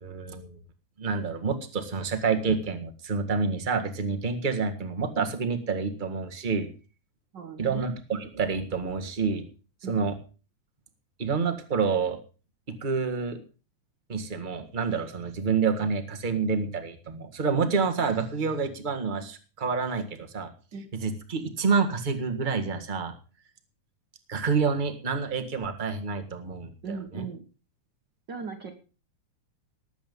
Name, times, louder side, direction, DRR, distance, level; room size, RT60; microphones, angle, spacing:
voice 1, 0.0-0.6 1.0-6.7 7.6-9.4 9.9-10.2 11.2-12.2 12.7-13.4 14.1-20.5 21.0-23.1 24.3-27.2, right 5 dB, 25° right, 6 dB, 1.2 m, -28 dB
voice 2, 7.3-7.8 9.8-10.1 20.7-20.9 26.8-27.4 28.3-28.7, right 5 dB, 45° right, 3 dB, 1.7 m, -38 dB
19.0 x 8.3 x 5.4 m, 0.36 s
omnidirectional pair, 3.5 m